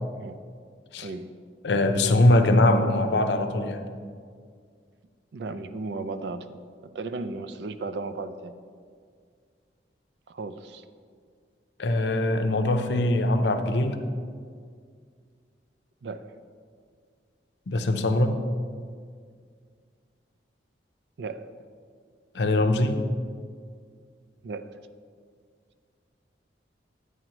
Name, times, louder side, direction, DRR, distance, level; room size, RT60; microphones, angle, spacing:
voice 1, 1.0-1.4 5.3-8.5 10.3-10.8 16.0-16.4 21.2-21.5 24.4-24.8, right 3 dB, 75° right, 11 dB, 0.4 m, -35 dB
voice 2, 1.6-3.8 11.8-14.0 17.7-18.4 22.3-23.0, left 1 dB, 75° left, 7 dB, 0.6 m, -22 dB
9.5 x 9.1 x 3.0 m, 2.1 s
head